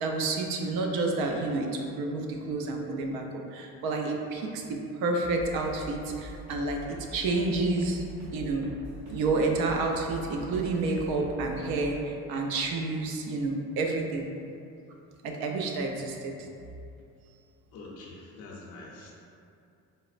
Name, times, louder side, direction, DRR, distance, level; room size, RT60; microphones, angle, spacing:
voice 1, 0.0-6.8 7.1-8.0 8.3-8.7 9.1-14.3 15.2-16.3, right 3 dB, 80° right, 2 dB, 0.5 m, -29 dB
sound 1, 5.2-12.0, equal, 55° right, 1.1 m, -44 dB
voice 2, 17.7-19.1, left 2 dB, 45° left, -4 dB, 0.5 m, -45 dB
4.1 x 2.1 x 2.4 m, 2.6 s
cardioid pair, 130°, 36 cm